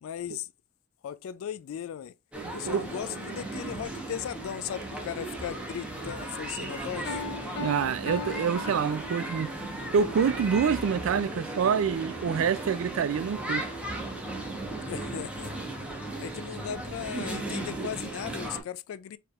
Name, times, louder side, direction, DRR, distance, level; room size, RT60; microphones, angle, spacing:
voice 1, 0.0-0.5 1.0-2.1 2.5-7.2 14.8-15.5 16.2-19.2, left 9 dB, 80° left, 0.3 m, -37 dB
sound 1, 2.3-18.6, right 2 dB, 5° right, 1.0 m, -36 dB
Piano, 7.1-9.5, left 3 dB, 55° left, 0.9 m, -38 dB
voice 2, 7.6-9.5 9.9-13.7, right 7 dB, 75° right, 0.3 m, -26 dB
4.4 x 3.4 x 2.4 m
head